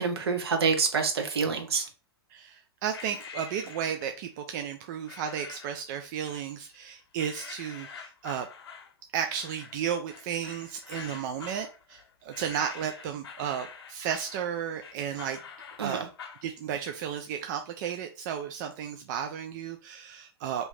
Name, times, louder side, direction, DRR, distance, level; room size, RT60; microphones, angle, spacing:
voice 1, 0.0-1.9 15.8-16.1, right 5 dB, 70° right, 5 dB, 0.9 m, -27 dB
voice 2, 2.3-8.5 9.1-15.4 15.8-16.1 16.4-20.7, right 8 dB, 45° right, 5 dB, 0.4 m, -33 dB
sound 1, 2.9-4.3 5.1-5.8 6.2-6.8 7.2-16.5, left 6 dB, 70° left, 0.8 m, -46 dB
2.9 x 2.7 x 3.3 m, 0.33 s
hypercardioid pair, 110°, 14 cm